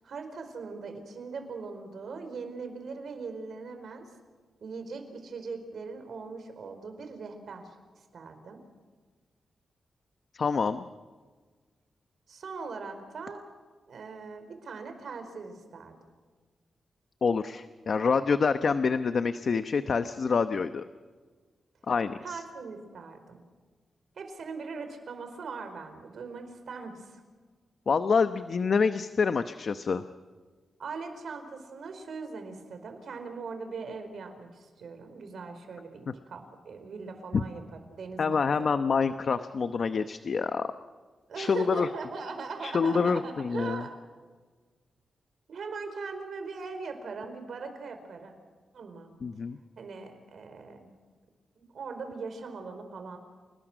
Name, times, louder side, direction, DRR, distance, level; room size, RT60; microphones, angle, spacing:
voice 1, 0.0-4.1 4.6-8.6 12.3-13.4 13.9-16.0 22.2-23.4 24.1-27.2 30.8-38.7 41.3-43.9 45.5-48.3 48.7-49.1 49.8-50.9 51.6-53.2, right 4 dB, 70° right, 7 dB, 4.8 m, -40 dB
voice 2, 10.3-10.9 17.2-20.8 21.9-22.4 27.9-30.0 37.3-37.4 38.2-40.7 41.4-41.9 42.6-43.8 49.2-49.6, left 5 dB, 55° left, 10 dB, 0.9 m, -27 dB
30.0 x 20.0 x 6.2 m, 1.4 s
cardioid pair, 100°, 0 cm